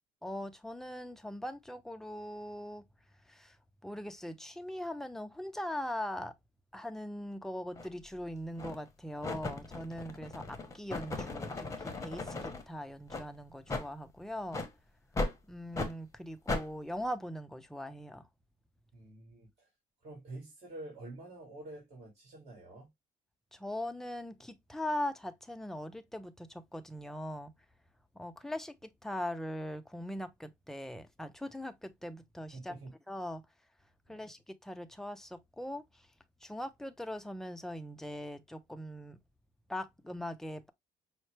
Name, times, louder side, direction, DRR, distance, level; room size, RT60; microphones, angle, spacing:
voice 1, 0.2-2.9 3.3-3.6 3.8-6.3 6.7-14.6 15.5-18.3 23.5-27.5 28.1-32.8 33.1-33.4 34.1-36.1 36.4-39.2 39.7-40.7, left 1 dB, ahead, 0.5 m, -41 dB
sound 1, 7.8-7.9 8.6-8.9 9.2-12.6 13.1-13.3 13.7-13.9 14.5-14.7 15.2-15.4 15.7-15.9 16.5-16.7, left 2 dB, 20° left, 0.9 m, -37 dB
voice 2, 18.9-19.7 20.0-22.9 32.5-32.9 34.1-34.3, right 2 dB, 40° right, 2.0 m, -48 dB
5.4 x 2.1 x 3.2 m
cardioid pair, 110°, 17 cm